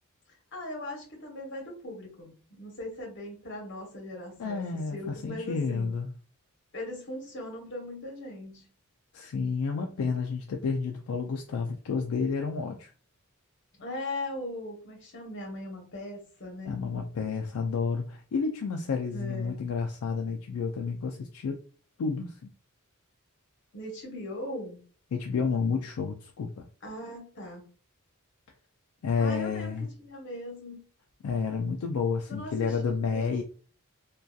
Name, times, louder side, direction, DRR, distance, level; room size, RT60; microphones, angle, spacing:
voice 1, 0.5-6.0 6.7-8.7 13.8-16.9 19.1-19.6 23.7-24.8 26.8-27.6 29.2-29.7 30.0-30.8 32.3-33.4, left 1 dB, 55° left, 0.9 m, -39 dB
voice 2, 4.4-6.1 9.1-12.9 16.7-21.6 22.0-22.4 25.1-26.6 29.0-29.9 31.2-33.4, left 5 dB, 80° left, 0.3 m, -30 dB
2.6 x 2.3 x 2.3 m
head